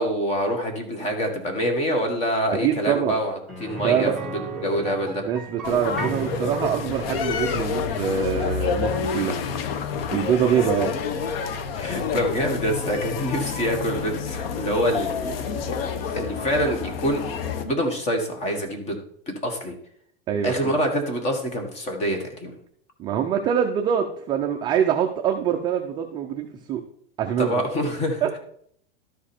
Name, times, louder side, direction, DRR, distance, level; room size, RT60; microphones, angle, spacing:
voice 1, 0.0-3.3 3.6-5.2 10.5-10.7 11.7-17.2 17.6-19.0 19.3-19.7 20.4-22.5 27.4-28.4, equal, 20° left, 4 dB, 1.5 m, -26 dB
voice 2, 2.6-3.2 3.8-4.2 5.2-9.4 10.1-10.9 20.3-20.8 23.0-26.8 27.2-27.5 28.2-28.4, right 9 dB, 15° right, 2 dB, 0.3 m, -24 dB
sound 1, 3.5-13.3 13.6-13.7 16.1-16.2, right 4 dB, ahead, 1.5 m, -38 dB
sound 2, 5.6-17.6, left 6 dB, 75° left, 1.1 m, -28 dB
12.5 x 5.1 x 4.3 m, 0.66 s
supercardioid pair, 160°, 30 cm